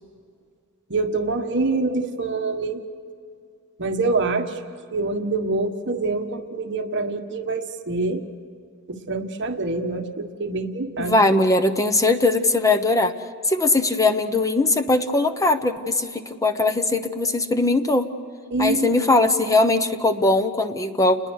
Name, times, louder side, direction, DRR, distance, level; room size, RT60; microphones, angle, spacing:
voice 1, 0.9-2.8 3.8-4.6 4.9-8.3 8.9-11.3 18.5-18.9, right 3 dB, 55° right, 5 dB, 1.5 m, -25 dB
voice 2, 11.0-13.1 13.5-18.1 18.6-21.2, left 2 dB, 15° left, 8 dB, 1.0 m, -20 dB
30.0 x 20.5 x 6.5 m, 2.2 s
head